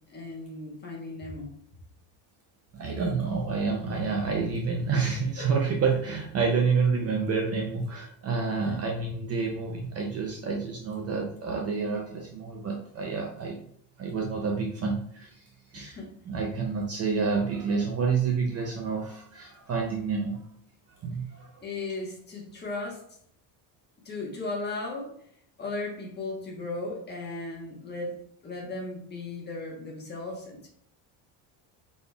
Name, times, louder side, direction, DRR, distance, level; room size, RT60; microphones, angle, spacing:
voice 1, 0.1-1.5 5.4-5.5 8.7-8.8 15.7-16.1 21.6-23.0 24.0-25.1 25.6-28.1 28.4-30.7, left 2 dB, 20° left, -2 dB, 1.1 m, -36 dB
voice 2, 2.7-13.6 14.0-15.4 15.7-16.0 16.3-20.4 21.0-21.6, right 5 dB, 35° right, 1 dB, 0.5 m, -28 dB
5.1 x 4.1 x 2.3 m, 0.68 s
cardioid pair, 155°, 46 cm